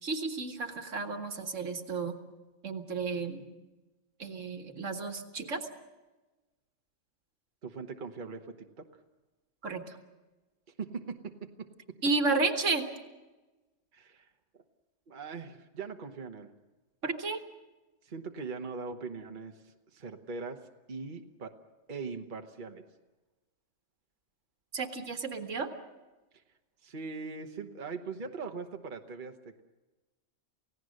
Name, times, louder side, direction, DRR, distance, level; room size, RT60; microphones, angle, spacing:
voice 1, 0.0-2.2 2.6-3.4 4.2-5.7 9.6-10.0 12.0-12.9 17.0-17.4 24.7-25.7, right 3 dB, 70° right, 7 dB, 1.9 m, -32 dB
voice 2, 7.6-8.9 10.8-11.7 13.9-14.6 15.1-16.5 18.0-20.6 20.9-21.5 21.9-22.8 26.3-26.4 26.8-29.6, right 4 dB, 40° right, 5 dB, 1.3 m, -41 dB
29.0 x 17.0 x 6.5 m, 1.2 s
omnidirectional pair, 1.3 m